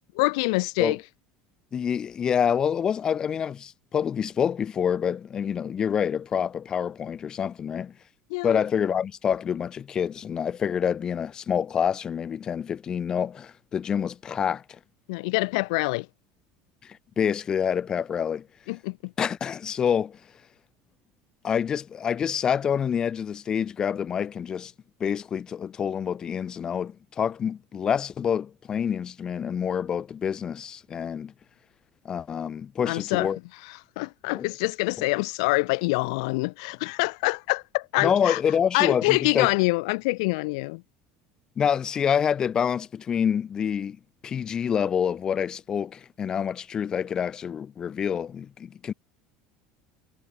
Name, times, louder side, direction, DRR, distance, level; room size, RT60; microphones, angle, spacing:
voice 1, 0.2-1.0 8.3-8.6 15.1-16.1 18.7-19.1 32.9-33.3 33.6-38.4 38.7-40.8, left 26 dB, 75° left, 3.6 m, -25 dB
voice 2, 1.7-7.9 8.4-14.6 16.8-18.5 19.2-20.2 21.4-24.7 25.0-31.3 32.0-33.4 34.3-34.5 35.0-35.1 38.0-39.5 41.6-44.0 44.2-48.9, left 8 dB, 25° left, 7.5 m, -27 dB
cardioid pair, 170°, 3 cm